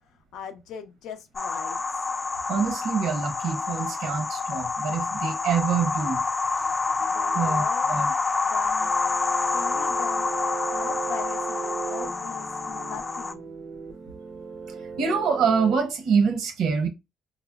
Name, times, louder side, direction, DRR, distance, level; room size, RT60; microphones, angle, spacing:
voice 1, 0.3-1.8 7.0-8.1 8.4-9.0 9.5-10.3 10.7-13.6, left 7 dB, 90° left, 0.5 m, -40 dB
sound 1, 1.3-13.3, left 4 dB, 25° left, 0.3 m, -28 dB
voice 2, 2.5-6.2 6.5-8.1 10.6-10.8 14.7-16.9, right 6 dB, 85° right, 0.8 m, -26 dB
sound 2, 8.8-15.8, right 6 dB, 40° right, 0.4 m, -36 dB
4.2 x 2.0 x 2.2 m
cardioid pair, 90°, 0 cm